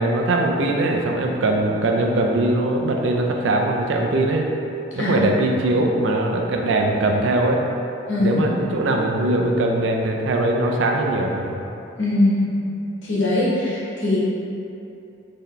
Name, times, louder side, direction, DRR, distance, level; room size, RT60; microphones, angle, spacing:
voice 1, 0.0-4.5 5.0-7.6 8.2-11.6, right 2 dB, 70° right, 1 dB, 0.4 m, -21 dB
voice 2, 5.0-5.3 5.5-5.6 8.1-8.4 11.9-12.6 13.0-14.2, left 1 dB, 70° left, -8 dB, 1.1 m, -21 dB
3.9 x 2.8 x 3.2 m, 2.8 s
head